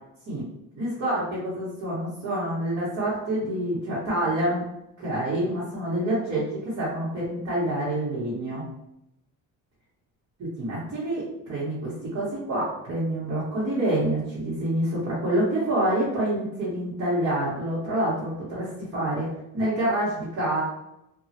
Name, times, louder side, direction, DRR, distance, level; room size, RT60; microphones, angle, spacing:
voice 1, 0.7-4.6 5.0-8.6 10.4-19.3 19.5-20.6, right 1 dB, 45° right, -8 dB, 1.1 m, -27 dB
3.0 x 2.3 x 2.8 m, 0.83 s
cardioid pair, 160°, 35 cm